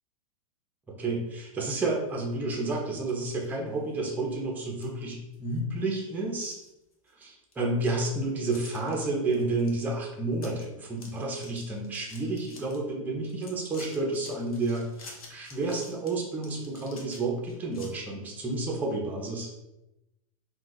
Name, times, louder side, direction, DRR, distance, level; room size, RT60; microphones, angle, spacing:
voice 1, 0.9-6.6 7.2-19.5, right 2 dB, 10° right, -1 dB, 0.6 m, -30 dB
sound 1, 3.0-3.6 4.0-4.1 4.8-4.9 5.3-5.8 6.2-7.2 7.5-7.6 8.5-8.9 9.3-9.7 10.0-10.1 10.3-10.7 10.9-12.8 13.2-17.9, left 3 dB, 85° left, 0.8 m, -50 dB
2.4 x 2.2 x 3.8 m, 0.91 s
hypercardioid pair, 125°, 18 cm